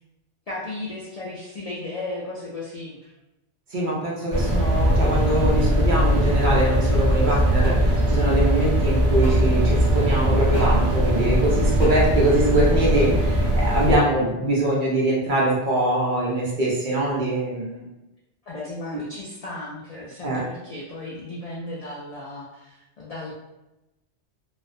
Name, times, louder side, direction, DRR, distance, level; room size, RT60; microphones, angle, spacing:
voice 1, 0.5-3.1 18.4-23.3, left 2 dB, 75° left, -5 dB, 0.3 m, -35 dB
voice 2, 3.7-17.8 20.2-20.4, right 1 dB, 55° right, -5 dB, 0.6 m, -23 dB
sound 1, 4.3-14.0, equal, 15° right, 0.8 m, -20 dB
sound 2, 6.4-6.6 7.6-7.8 9.2-9.4 10.5-10.7 11.8-12.0, left 1 dB, 60° left, 1.2 m, -35 dB
2.4 x 2.0 x 2.5 m, 0.96 s
omnidirectional pair, 1.2 m